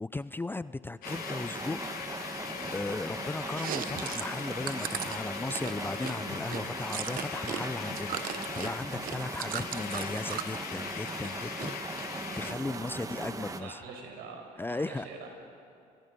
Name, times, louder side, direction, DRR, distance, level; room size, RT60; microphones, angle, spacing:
voice 1, 0.0-1.8 2.2-2.4 2.7-13.8 14.6-15.1, left 2 dB, 15° left, 15 dB, 0.5 m, -37 dB
sound 1, 1.0-12.5, left 10 dB, 65° left, 1.3 m, -41 dB
sound 2, 1.0-13.6, right 3 dB, 20° right, 1.4 m, -40 dB
Chewing mastication, 3.5-7.6 7.9-10.6 11.0-11.7 12.0-12.9, right 11 dB, 65° right, 1.1 m, -38 dB
voice 2, 12.4-15.3, right 4 dB, 85° right, 2 dB, 5.5 m, -46 dB
30.0 x 23.5 x 5.4 m, 2.4 s
supercardioid pair, 85°, 16 cm